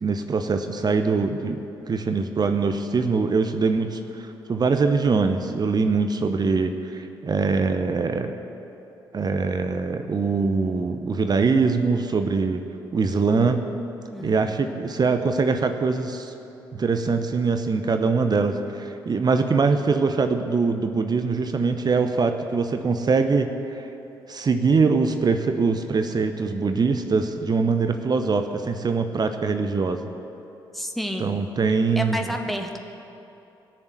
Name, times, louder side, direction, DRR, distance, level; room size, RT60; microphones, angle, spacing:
voice 1, 0.0-8.4 9.1-12.6 12.9-13.6 14.2-16.3 16.7-23.9 24.3-30.0 31.2-32.2, right 4 dB, 35° right, 7 dB, 0.9 m, -23 dB
voice 2, 14.1-14.4 30.7-31.4 32.0-32.8, equal, ahead, 3 dB, 1.7 m, -30 dB
18.0 x 7.1 x 8.2 m, 2.9 s
figure-of-eight pair, 40°, 11 cm